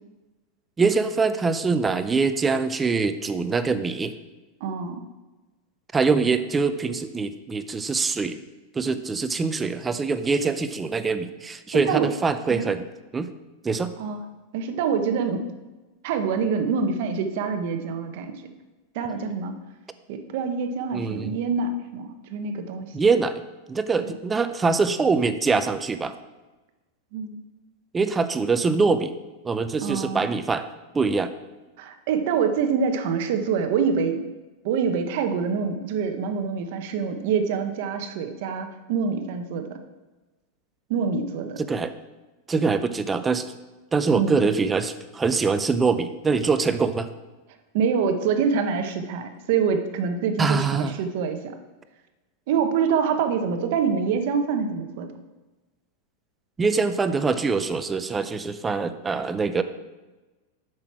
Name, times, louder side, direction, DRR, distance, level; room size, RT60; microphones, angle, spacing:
voice 1, 0.8-4.1 5.9-8.4 8.7-12.9 13.1-13.3 13.6-13.9 20.9-21.3 22.9-23.4 23.7-26.1 27.9-29.1 29.4-30.7 30.9-31.3 41.6-41.9 42.5-43.5 43.9-47.1 50.4-50.9 56.6-59.6, right 4 dB, 10° right, 11 dB, 0.4 m, -23 dB
voice 2, 4.6-5.0 11.7-12.1 12.5-12.7 14.0-14.2 14.5-15.5 16.0-18.3 18.9-19.5 20.1-23.0 27.1-27.4 29.8-30.3 31.8-34.2 34.6-39.8 40.9-41.6 44.1-44.4 47.7-51.6 52.5-55.1, right 6 dB, 55° right, 7 dB, 0.9 m, -25 dB
7.5 x 6.0 x 4.6 m, 1.2 s
supercardioid pair, 160°, 0 cm